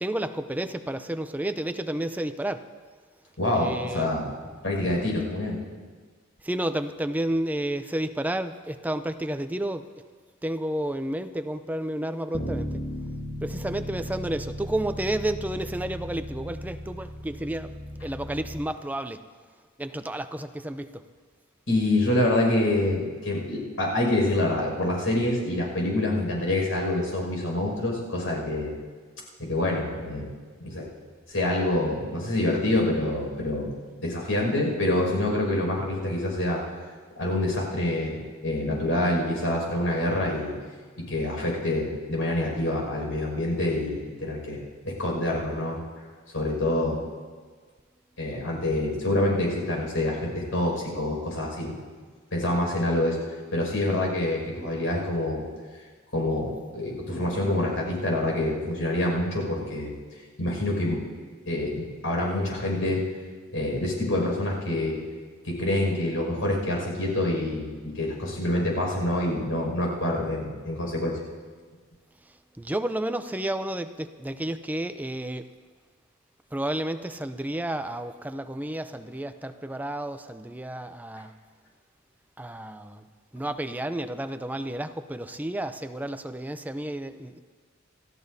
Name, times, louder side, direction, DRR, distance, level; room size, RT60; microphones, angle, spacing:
voice 1, 0.0-2.6 3.5-4.1 6.5-9.8 10.4-12.7 13.4-17.7 18.0-19.2 19.8-20.9 72.6-75.4 76.5-81.3 82.4-83.0 83.3-87.4, right 1 dB, 10° right, 9 dB, 0.5 m, -31 dB
voice 2, 3.4-4.2 4.6-5.6 21.7-28.7 29.4-30.3 30.6-30.9 31.3-33.7 34.0-36.6 37.2-40.5 41.0-44.6 44.8-45.8 46.3-47.0 48.2-51.7 52.3-53.2 53.5-55.4 56.1-59.9 60.4-61.0 61.5-63.0 63.5-65.0 65.4-71.2, left 1 dB, 85° left, -2 dB, 5.9 m, -26 dB
Bass guitar, 12.3-18.6, equal, 40° left, 1.4 m, -36 dB
28.5 x 14.0 x 2.7 m, 1.5 s
head